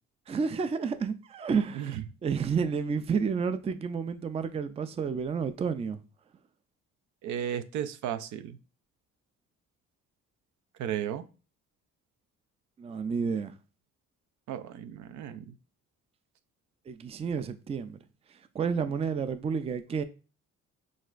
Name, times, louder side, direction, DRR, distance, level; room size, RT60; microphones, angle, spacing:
voice 1, 0.3-6.0 12.8-13.5 16.9-18.0 18.5-20.0, right 6 dB, 20° right, 0.3 m, -30 dB
voice 2, 7.2-8.6 10.8-11.2 14.5-15.5, right 10 dB, 75° right, 0.5 m, -34 dB
6.2 x 2.4 x 2.4 m
cardioid pair, 90°, 30 cm